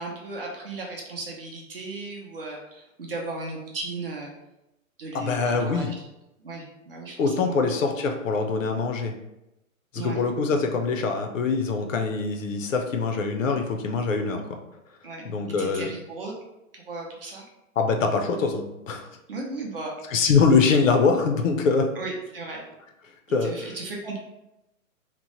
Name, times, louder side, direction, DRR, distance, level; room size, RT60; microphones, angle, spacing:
voice 1, 0.0-4.3 5.0-5.9 6.4-7.5 10.0-10.2 15.0-15.3 15.6-16.3 16.7-17.5 19.3-19.9 20.2-20.3 22.0-22.6 23.4-24.2, right 3 dB, 40° right, -1 dB, 0.6 m, -36 dB
voice 2, 5.1-5.9 7.2-9.1 9.9-14.4 15.2-15.9 17.8-19.1 20.1-21.9 23.3-23.7, left 4 dB, 65° left, 4 dB, 0.6 m, -23 dB
2.9 x 2.1 x 2.9 m, 0.90 s
hypercardioid pair, 165°, 43 cm